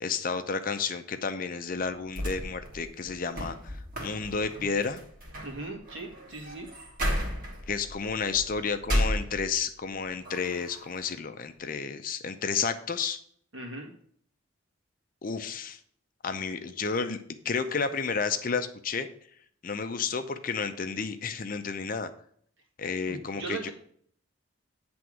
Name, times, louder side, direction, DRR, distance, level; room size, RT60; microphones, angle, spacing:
voice 1, 0.0-5.0 7.7-13.2 15.2-15.8 16.2-19.1 19.6-22.1 22.8-23.7, left 5 dB, 40° left, 9 dB, 0.5 m, -31 dB
sound 1, 2.1-9.8 10.2-11.0, equal, 40° right, 1.5 m, -34 dB
voice 2, 5.4-6.7 13.5-13.9 23.0-23.7, right 3 dB, 70° right, 1 dB, 1.7 m, -38 dB
9.2 x 3.5 x 6.2 m, 0.62 s
head